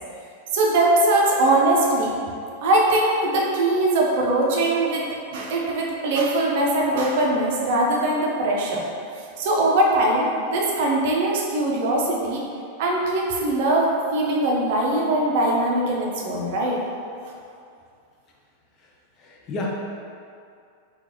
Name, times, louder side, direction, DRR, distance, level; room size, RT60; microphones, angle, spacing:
voice 1, 0.5-2.2 2.6-8.8 9.4-12.5 12.8-16.8, right 1 dB, 50° right, -2 dB, 0.6 m, -21 dB
voice 2, 19.2-19.7, left 2 dB, 35° left, -2 dB, 0.6 m, -30 dB
4.5 x 2.4 x 2.8 m, 2.4 s
figure-of-eight pair, 90°, 0 cm